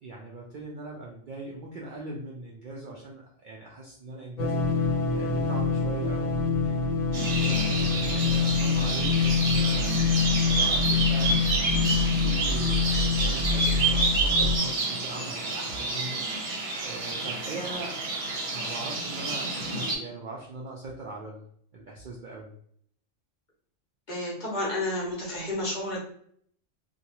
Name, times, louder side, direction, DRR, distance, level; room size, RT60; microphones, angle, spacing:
voice 1, 0.0-4.8 5.1-6.8 7.3-11.4 11.9-16.5 16.8-18.0 18.5-21.4 21.7-22.5, right 2 dB, 75° right, -3 dB, 0.4 m, -40 dB
sound 1, 4.4-14.6, left 4 dB, 85° left, 1.1 m, -25 dB
sound 2, 7.1-20.0, right 3 dB, 55° right, 0.9 m, -29 dB
voice 2, 24.1-26.0, left 1 dB, 45° left, -3 dB, 0.7 m, -31 dB
2.5 x 2.2 x 2.9 m, 0.63 s
omnidirectional pair, 1.4 m